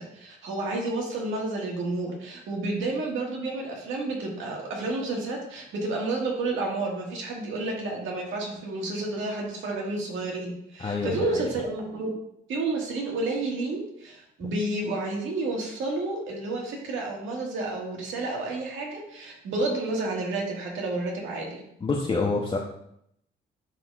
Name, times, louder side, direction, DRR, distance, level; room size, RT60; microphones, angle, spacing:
voice 1, 0.0-12.1 12.5-21.6, right 2 dB, 80° right, -1 dB, 1.8 m, -30 dB
voice 2, 10.8-11.5 21.8-22.6, left 3 dB, 25° left, -2 dB, 0.8 m, -27 dB
10.5 x 4.2 x 2.4 m, 0.75 s
cardioid pair, 90°, 20 cm